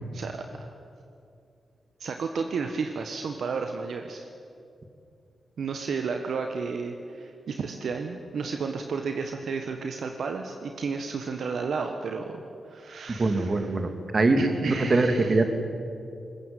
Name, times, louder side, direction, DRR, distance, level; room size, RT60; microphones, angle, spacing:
voice 1, 0.1-0.7 2.0-4.3 5.6-13.9 14.4-15.4, right 5 dB, 75° right, 5 dB, 1.3 m, -32 dB
voice 2, 13.2-15.5, right 2 dB, 50° right, 7 dB, 2.8 m, -23 dB
21.5 x 20.0 x 9.1 m, 2.6 s
supercardioid pair, 45°, 0 cm